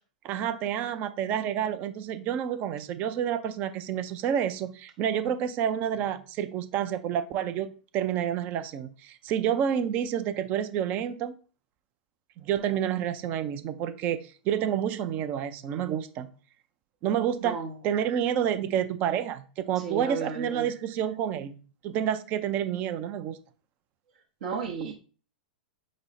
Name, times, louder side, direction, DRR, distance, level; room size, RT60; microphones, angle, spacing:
voice 1, 0.2-11.4 12.4-16.3 17.0-17.6 17.8-21.6 21.8-23.4, right 9 dB, 40° right, 11 dB, 0.4 m, -29 dB
voice 2, 17.4-17.8 19.8-20.7 24.4-24.9, right 5 dB, 65° right, -1 dB, 0.8 m, -33 dB
5.1 x 2.0 x 4.1 m, 0.37 s
figure-of-eight pair, 100°, 4 cm